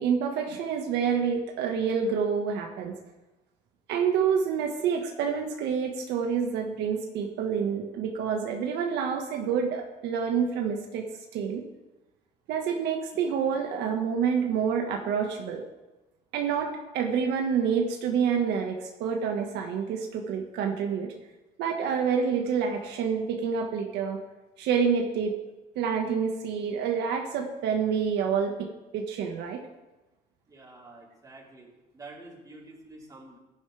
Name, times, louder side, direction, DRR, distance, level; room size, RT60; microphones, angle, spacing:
voice 1, 0.0-3.0 3.9-11.6 12.5-15.6 16.3-21.1 21.6-24.2 24.6-25.3 25.7-28.7 28.9-29.6, right 6 dB, 85° right, 2 dB, 1.7 m, -28 dB
voice 2, 30.5-33.4, right 2 dB, 20° right, -4 dB, 4.3 m, -48 dB
17.0 x 11.5 x 3.5 m, 1.1 s
cardioid pair, 110°, 17 cm